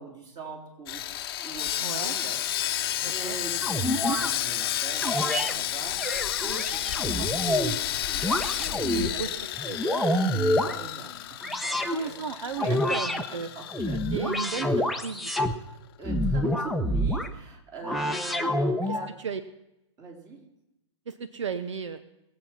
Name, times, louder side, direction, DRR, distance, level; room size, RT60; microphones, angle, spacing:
voice 1, 0.0-9.3 9.8-9.9 10.1-14.4 16.0-19.2 20.0-20.4, right 3 dB, 25° right, 1 dB, 3.4 m, -43 dB
Sawing, 0.9-15.1 15.4-15.5 16.0-16.1, left 12 dB, 50° left, 0.9 m, -32 dB
voice 2, 1.8-2.1 3.0-3.4 9.0-9.3 9.7-10.1 11.9-13.5 14.1-15.3 18.1-18.2 19.2-19.4 21.1-22.0, right 6 dB, 75° right, 11 dB, 0.9 m, -34 dB
sound 1, 3.6-4.3 5.0-5.5 6.0-7.8 8.2-9.1 9.6-10.8 11.4-12.0 12.6-13.2 13.7-15.6 16.0-17.3 17.8-19.1, left 1 dB, ahead, 0.8 m, -27 dB
20.5 x 7.7 x 5.8 m, 0.89 s
hypercardioid pair, 125°, 16 cm